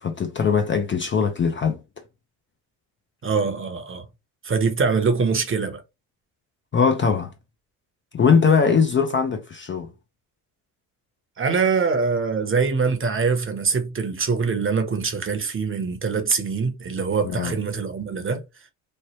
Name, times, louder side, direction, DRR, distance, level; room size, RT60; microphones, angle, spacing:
voice 1, 0.0-1.8 6.7-7.3 8.1-9.9 17.2-17.5, left 6 dB, 25° left, 0.5 m, -20 dB
voice 2, 3.2-4.0 4.4-5.8 8.2-8.4 11.4-18.4, right 5 dB, 30° right, 0.9 m, -23 dB
3.2 x 2.1 x 3.0 m
supercardioid pair, 70°, 43 cm